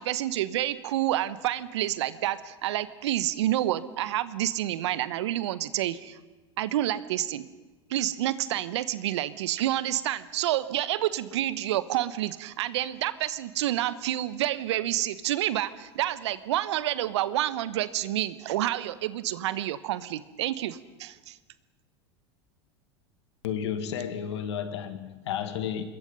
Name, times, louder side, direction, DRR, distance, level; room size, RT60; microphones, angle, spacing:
voice 1, 0.0-6.2 6.6-7.5 7.9-21.4, right 13 dB, 75° right, 1.2 m, -29 dB
voice 2, 23.4-25.8, left 8 dB, 75° left, 2.1 m, -32 dB
26.5 x 21.5 x 5.6 m
hypercardioid pair, 85°, 15 cm